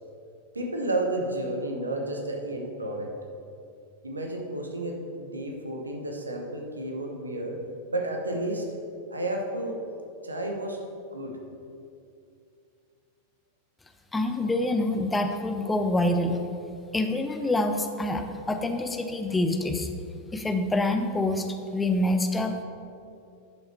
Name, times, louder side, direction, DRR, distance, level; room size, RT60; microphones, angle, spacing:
voice 1, 0.5-3.1 4.0-7.6 7.9-8.7 9.1-9.8 10.2-10.8 11.1-11.4, right 1 dB, 80° right, 2 dB, 1.1 m, -31 dB
voice 2, 14.1-16.4 16.9-19.9 20.3-21.5 21.7-22.6, left 2 dB, 10° left, 6 dB, 0.6 m, -26 dB
10.5 x 5.5 x 4.4 m, 2.6 s
figure-of-eight pair, 90°, 0 cm